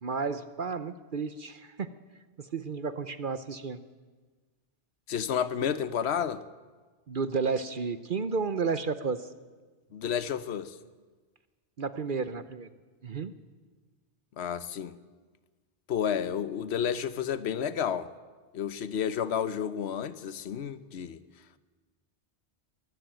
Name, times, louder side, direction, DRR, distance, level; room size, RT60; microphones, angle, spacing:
voice 1, 0.0-1.9 2.4-3.8 7.1-9.3 11.8-12.7 13.0-13.3, right 5 dB, 55° right, 12 dB, 0.9 m, -32 dB
voice 2, 5.1-6.4 9.9-10.8 14.4-15.0 15.9-18.1 18.5-21.2, left 8 dB, 75° left, 14 dB, 1.1 m, -31 dB
23.0 x 13.5 x 9.1 m, 1.4 s
omnidirectional pair, 1.1 m